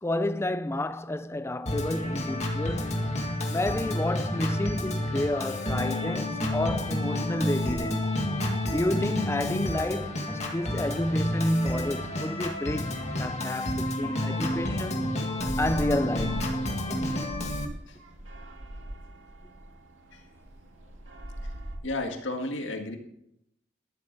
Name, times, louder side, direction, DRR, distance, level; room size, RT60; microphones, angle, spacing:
voice 1, 0.0-3.0 3.5-8.1 8.7-15.0 15.6-16.5, left 1 dB, 15° left, 0.5 m, -30 dB
Organ, 1.7-17.7, left 1 dB, 35° left, 2.0 m, -30 dB
sound 1, 2.1-21.8, right 1 dB, 90° right, 2.4 m, -44 dB
voice 2, 21.8-23.0, left 2 dB, 80° left, 2.0 m, -33 dB
13.0 x 12.0 x 4.1 m
head